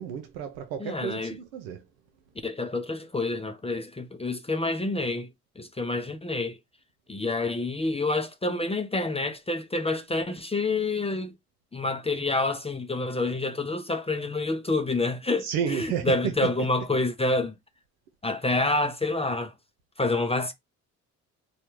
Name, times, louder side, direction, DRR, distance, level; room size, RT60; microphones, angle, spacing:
voice 1, 0.0-1.8 15.4-16.3, right 8 dB, 85° right, 0.6 m, -31 dB
voice 2, 0.8-1.4 2.4-5.3 5.6-6.6 7.1-11.3 11.7-17.5 18.2-19.5 20.0-20.5, left 2 dB, 15° left, 0.5 m, -28 dB
3.3 x 2.2 x 3.0 m
hypercardioid pair, 55°, 41 cm